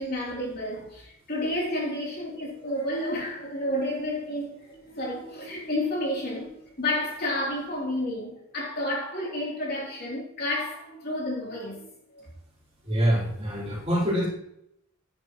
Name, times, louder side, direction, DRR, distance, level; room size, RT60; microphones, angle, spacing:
voice 1, 0.0-11.9, left 1 dB, 45° left, 3.3 m, -31 dB
voice 2, 12.8-14.3, equal, 30° right, 4.2 m, -25 dB
10.0 x 10.0 x 3.1 m
head